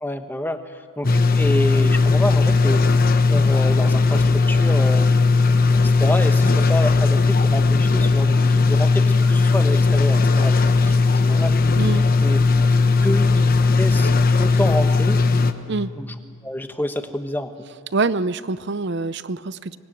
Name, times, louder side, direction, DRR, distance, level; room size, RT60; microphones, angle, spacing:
voice 1, 0.0-2.8 3.3-5.1 5.8-11.6 12.2-12.4 13.0-14.1 14.4-15.2 16.0-16.1 16.4-17.5, left 1 dB, 10° left, 7 dB, 1.1 m, -28 dB
sound 1, 1.0-15.5, left 3 dB, 40° left, 1.0 m, -17 dB
voice 2, 17.9-19.8, right 3 dB, 50° right, 15 dB, 0.6 m, -25 dB
25.0 x 20.0 x 8.8 m, 2.6 s
head